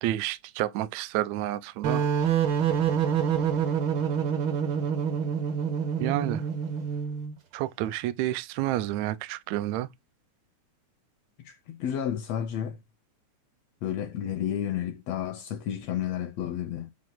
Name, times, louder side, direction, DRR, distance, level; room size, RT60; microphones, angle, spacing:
voice 1, 0.0-2.0 6.0-6.5 7.5-9.9, right 14 dB, 75° right, 1.8 m, -29 dB
sound 1, 1.8-7.3, right 7 dB, 60° right, 1.4 m, -26 dB
voice 2, 11.4-12.8 13.8-16.9, left 10 dB, 75° left, 1.7 m, -31 dB
7.6 x 2.9 x 5.8 m
omnidirectional pair, 3.5 m